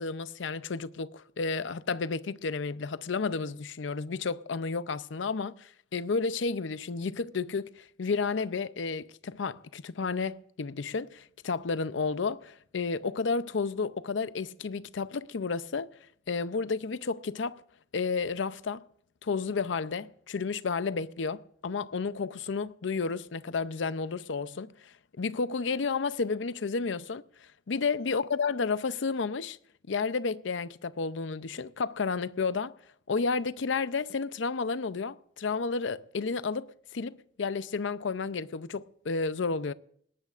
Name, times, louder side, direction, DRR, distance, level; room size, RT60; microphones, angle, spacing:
voice 1, 0.0-15.9 16.3-17.6 17.9-18.8 19.2-29.6 29.9-32.7 33.1-39.7, left 4 dB, 80° left, 0.6 m, -32 dB
20.0 x 18.5 x 2.5 m
head